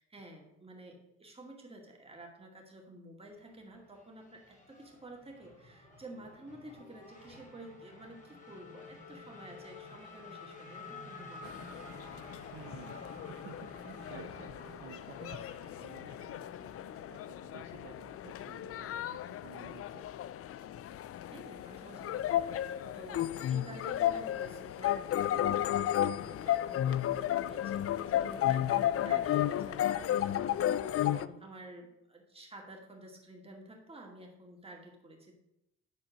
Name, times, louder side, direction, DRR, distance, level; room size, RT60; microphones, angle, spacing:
voice 1, 0.0-11.7 21.3-27.8 28.2-35.3, right 1 dB, 20° right, 0 dB, 2.4 m, -51 dB
Race car auto racing / Accelerating revving vroom, 3.3-20.3, left 2 dB, 25° left, 2.2 m, -52 dB
sound 1, 11.4-31.3, left 11 dB, 50° left, 0.4 m, -33 dB
voice 2, 12.5-20.0 28.6-29.5, right 8 dB, 60° right, 4 dB, 0.8 m, -53 dB
9.7 x 4.3 x 6.1 m, 0.84 s
cardioid pair, 90°, 30 cm